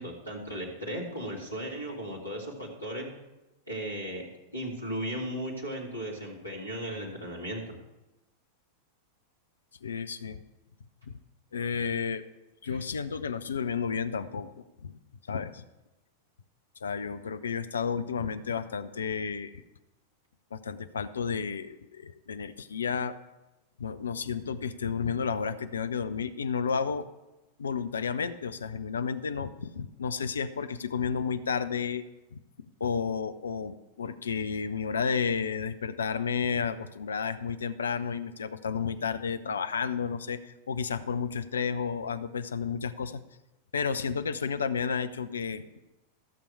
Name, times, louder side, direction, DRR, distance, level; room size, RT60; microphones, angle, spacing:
voice 1, 0.0-3.1 3.7-4.2 4.5-7.6 12.6-12.8, equal, 90° left, -4 dB, 2.3 m, -36 dB
voice 2, 9.8-10.4 11.1-11.2 11.5-12.2 12.6-14.5 14.8-15.0 15.3-15.6 16.8-19.6 20.5-23.1 23.8-27.1 27.6-32.0 32.3-32.4 32.8-43.2 43.7-45.6, left 6 dB, 70° left, 12 dB, 0.6 m, -32 dB
14.5 x 7.0 x 4.8 m, 1.0 s
figure-of-eight pair, 90°, 0 cm